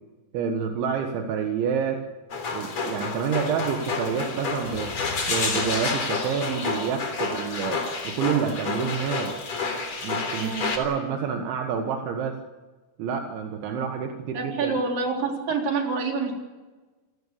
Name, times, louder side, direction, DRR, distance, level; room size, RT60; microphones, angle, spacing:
voice 1, 0.3-2.0 2.5-5.0 5.2-9.4 10.0-12.4 13.0-14.8, right 7 dB, 80° right, 4 dB, 3.8 m, -28 dB
sound 1, 2.3-10.8, left 4 dB, 40° left, 4.2 m, -29 dB
voice 2, 10.3-10.7 14.3-16.3, right 4 dB, 50° right, 1 dB, 5.3 m, -27 dB
29.0 x 18.0 x 7.0 m, 1.3 s
omnidirectional pair, 5.4 m